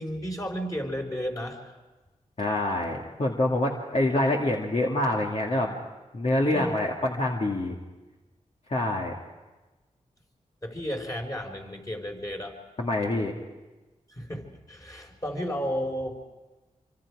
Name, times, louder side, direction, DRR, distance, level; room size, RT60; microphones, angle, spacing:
voice 1, 0.0-1.7 6.5-6.8 10.6-12.6 14.1-16.2, equal, 25° left, 1 dB, 4.7 m, -33 dB
voice 2, 2.4-5.7 6.1-7.8 8.7-9.2 12.8-13.3, left 1 dB, 55° left, -2 dB, 2.3 m, -26 dB
26.0 x 25.0 x 4.9 m, 1.2 s
cardioid pair, 60°, 13 cm